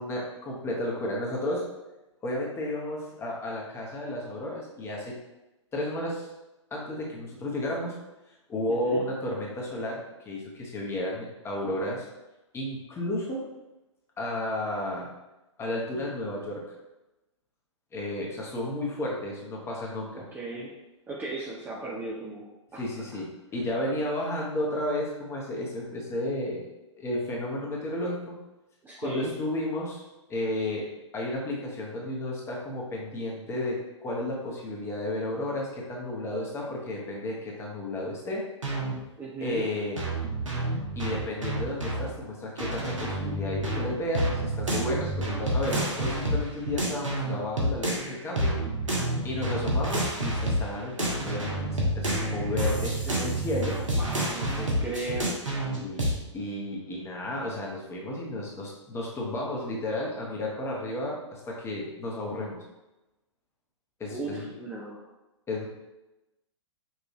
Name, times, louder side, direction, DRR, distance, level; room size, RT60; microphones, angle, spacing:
voice 1, 0.0-1.7 2.2-5.2 5.7-6.3 6.7-8.0 8.5-12.1 12.5-13.4 14.2-15.1 15.6-16.7 17.9-20.2 22.8-26.7 27.0-28.4 29.0-30.0 30.3-38.5 39.4-40.1 41.0-48.6 49.2-53.8 55.8-62.6 64.0-64.5 65.5-65.7, left 1 dB, 15° left, -2 dB, 1.0 m, -32 dB
voice 2, 20.1-20.7 21.1-22.8 23.1-23.2 28.8-29.3 39.2-39.7 53.9-55.4 64.1-65.1, right 2 dB, 10° right, -5 dB, 0.5 m, -36 dB
sound 1, 38.6-38.9 40.0-42.1 42.6-48.1 48.4-50.7 51.0-56.1, right 1 dB, 80° right, 1.2 m, -29 dB
5.6 x 2.6 x 3.0 m, 1.0 s
figure-of-eight pair, 115°, 16 cm